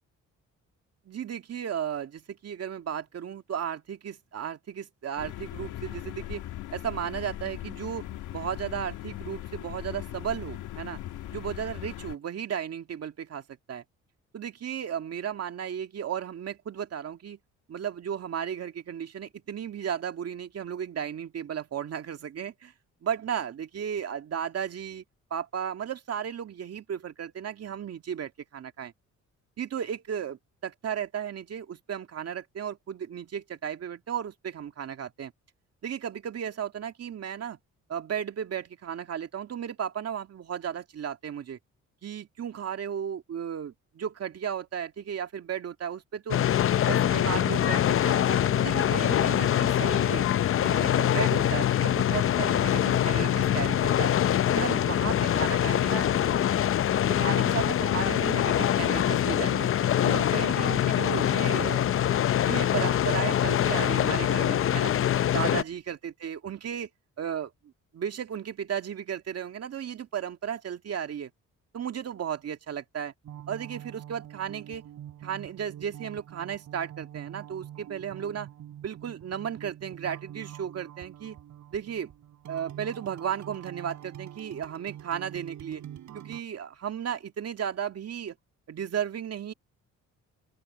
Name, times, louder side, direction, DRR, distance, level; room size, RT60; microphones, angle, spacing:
voice 1, 1.1-6.4 6.7-11.0 11.3-13.4 13.7-13.8 14.3-17.4 17.7-22.7 23.0-25.0 25.3-28.9 29.6-35.3 35.8-37.6 37.9-41.6 42.0-46.4 46.8-50.2 50.6-54.1 54.5-56.1 57.1-59.7 60.0-61.9 62.3-64.9 65.3-66.9 67.2-67.5 67.9-71.3 71.7-73.1 73.5-74.8 75.2-78.5 78.8-81.4 81.7-82.1 82.5-85.8 86.1-88.3 88.7-89.5, right 8 dB, 55° right, 2.2 m, -34 dB
sound 1, 5.2-12.2, left 13 dB, 80° left, 1.8 m, -39 dB
sound 2, 46.3-65.6, left 11 dB, 45° left, 0.6 m, -24 dB
sound 3, 73.2-86.4, right 11 dB, 70° right, 5.3 m, -45 dB
open air
cardioid pair, 90°, 30 cm